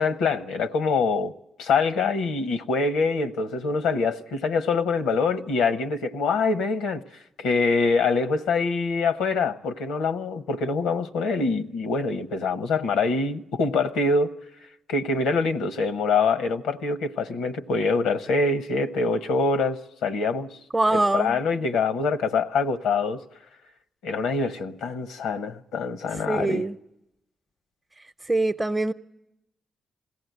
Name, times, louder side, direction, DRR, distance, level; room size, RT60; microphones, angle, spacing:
voice 1, 0.0-7.0 7.4-14.4 14.9-20.5 20.9-23.2 24.0-26.7, left 4 dB, 90° left, 0.9 m, -25 dB
voice 2, 20.7-21.4 26.3-26.8 28.3-28.9, right 2 dB, 20° right, 0.7 m, -23 dB
21.0 x 16.5 x 9.3 m
supercardioid pair, 50°, 0 cm